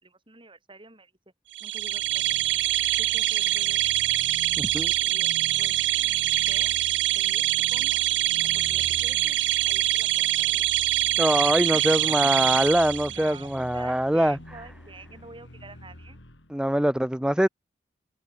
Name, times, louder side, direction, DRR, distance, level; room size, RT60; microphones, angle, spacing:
voice 1, 0.0-1.1 1.6-2.4 3.0-3.8 5.0-5.3 5.6-5.8 6.2-6.7 7.2-8.0 8.4-9.4 9.7-10.6 11.7-12.3 13.1-16.2, right 3 dB, 30° right, 4.7 m, -47 dB
sound 1, 1.6-13.4, right 14 dB, 75° right, 0.5 m, -24 dB
sound 2, 1.8-16.5, left 1 dB, 80° left, 3.6 m, -46 dB
voice 2, 4.6-4.9 11.2-14.4 16.5-17.5, right 1 dB, 5° right, 0.5 m, -23 dB
head